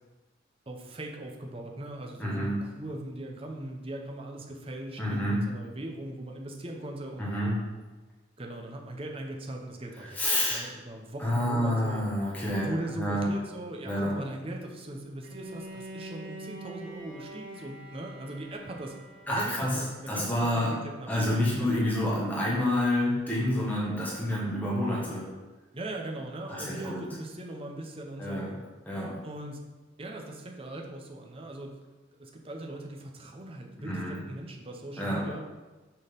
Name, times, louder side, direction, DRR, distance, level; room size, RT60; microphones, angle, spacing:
voice 1, 0.7-7.3 8.4-10.2 10.5-12.1 12.6-18.9 19.3-21.7 25.7-28.4 29.2-29.6 30.0-31.8 32.2-35.5, right 1 dB, 30° right, 1 dB, 0.8 m, -39 dB
voice 2, 2.2-2.6 5.0-5.4 7.2-7.5 10.1-10.7 11.2-13.3 13.8-14.1 19.3-20.7 21.1-25.3 26.5-27.0 28.2-28.6 28.9-29.2 33.8-34.2 35.0-35.2, left 1 dB, 10° left, -6 dB, 1.3 m, -28 dB
Bowed string instrument, 15.2-20.2, right 2 dB, 75° right, 2.1 m, -45 dB
6.5 x 3.9 x 5.2 m, 1.2 s
head